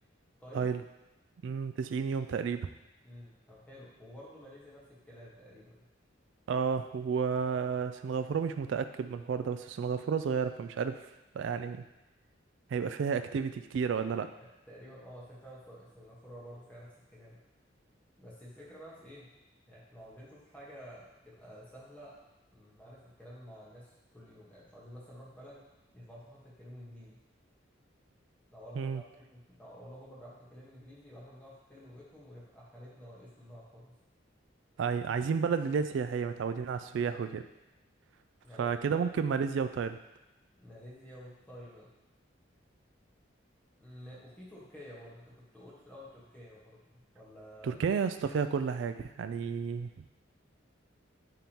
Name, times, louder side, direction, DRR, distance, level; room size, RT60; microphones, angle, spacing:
voice 1, 0.4-0.7 3.0-5.9 14.4-17.4 18.2-19.3 19.7-22.1 22.5-25.6 25.9-27.2 28.5-33.9 36.9-37.0 38.4-39.1 40.6-41.9 43.8-47.8, equal, 10° left, -7 dB, 1.3 m, -51 dB
voice 2, 1.4-2.7 6.5-11.1 11.3-11.8 12.7-14.3 28.8-29.0 34.8-37.4 38.6-40.0 47.6-49.9, right 6 dB, 70° right, 10 dB, 0.3 m, -31 dB
9.1 x 3.6 x 2.9 m, 0.99 s
head